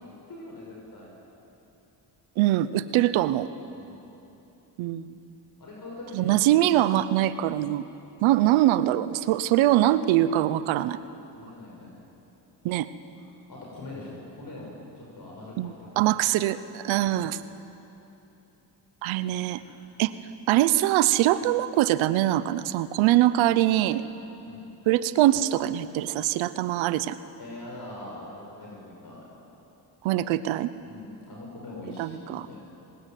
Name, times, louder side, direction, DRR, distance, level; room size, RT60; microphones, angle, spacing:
voice 1, 0.0-1.1 3.7-4.1 5.6-6.7 11.3-11.9 13.2-15.5 15.8-16.1 16.9-17.1 19.6-19.8 24.4-24.6 27.4-29.2 30.9-32.6, left 2 dB, 50° left, -3 dB, 6.1 m, -42 dB
voice 2, 2.4-3.5 4.8-5.2 6.1-7.9 8.2-11.0 12.6-12.9 15.6-17.4 19.0-19.6 20.0-20.1 20.5-24.0 24.9-27.2 30.0-30.7 32.0-32.5, right 14 dB, 90° right, 15 dB, 0.8 m, -23 dB
19.5 x 19.5 x 9.2 m, 3.0 s
supercardioid pair, 60°, 46 cm